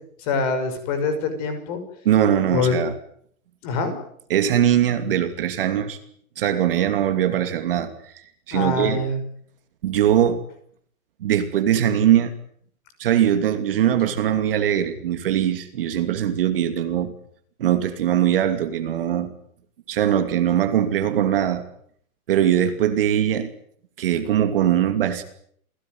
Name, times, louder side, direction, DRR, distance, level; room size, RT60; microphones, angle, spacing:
voice 1, 0.2-1.8 2.5-2.8 3.6-4.0 8.5-9.2, left 4 dB, 25° left, 10 dB, 5.9 m, -24 dB
voice 2, 2.0-2.9 4.3-6.0 6.4-7.9 8.1-9.0 9.8-10.4 11.2-12.3 13.0-17.1 17.6-19.3 19.9-21.6 22.3-23.5 24.0-25.2, right 10 dB, 40° right, 8 dB, 2.7 m, -21 dB
29.5 x 18.0 x 9.5 m, 0.66 s
hypercardioid pair, 170°, 44 cm